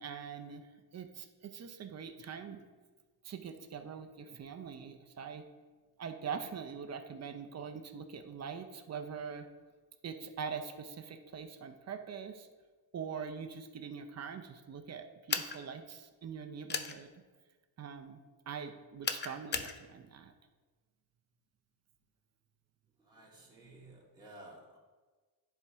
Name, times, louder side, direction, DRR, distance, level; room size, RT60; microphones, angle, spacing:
voice 1, 0.0-2.6 3.2-5.5 6.0-9.5 10.0-12.5 12.9-17.2 17.8-18.2 18.5-20.3 23.6-24.0, right 6 dB, 35° right, 7 dB, 0.7 m, -43 dB
sound 1, 15.3-15.6 16.7-16.9 19.0-19.7, left 6 dB, 25° left, 0.5 m, -34 dB
voice 2, 23.0-24.8, right 1 dB, 10° right, -7 dB, 2.5 m, -55 dB
10.5 x 4.5 x 3.6 m, 1.4 s
cardioid pair, 115°, 44 cm